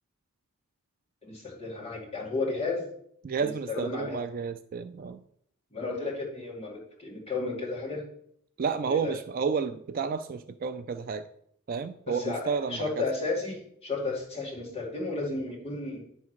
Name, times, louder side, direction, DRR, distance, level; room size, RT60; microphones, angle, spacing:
voice 1, 1.2-2.9 3.4-4.2 5.7-8.0 8.9-9.1 12.1-16.1, left 3 dB, 25° left, -4 dB, 2.3 m, -33 dB
voice 2, 3.2-5.2 8.6-11.3 11.7-13.0, right 5 dB, 40° right, 10 dB, 0.3 m, -31 dB
9.5 x 3.6 x 6.2 m, 0.70 s
head